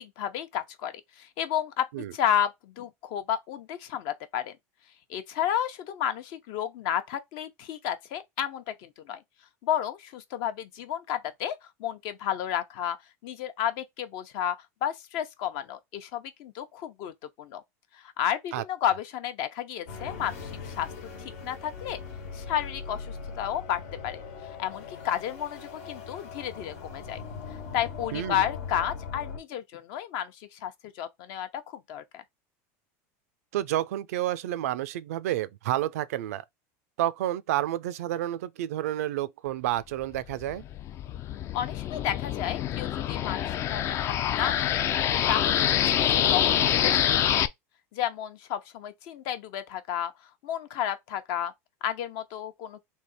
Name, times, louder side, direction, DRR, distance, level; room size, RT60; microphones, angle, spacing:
voice 1, 0.0-4.6 5.1-9.2 9.6-13.0 13.2-17.1 17.4-17.6 18.2-20.9 21.2-22.0 22.3-24.2 24.6-27.2 27.7-31.6 31.9-32.2 41.5-44.9 45.3-47.5 47.9-50.1 50.4-51.5 51.8-52.8, left 10 dB, 60° left, 0.8 m, -32 dB
sound 1, 19.9-29.4, left 5 dB, 90° left, 1.4 m, -40 dB
voice 2, 28.1-28.5 33.5-36.4 37.0-40.6, right 13 dB, 90° right, 0.4 m, -30 dB
sound 2, 40.1-47.5, left 10 dB, 35° left, 0.4 m, -26 dB
3.4 x 2.8 x 4.0 m
supercardioid pair, 135°, 8 cm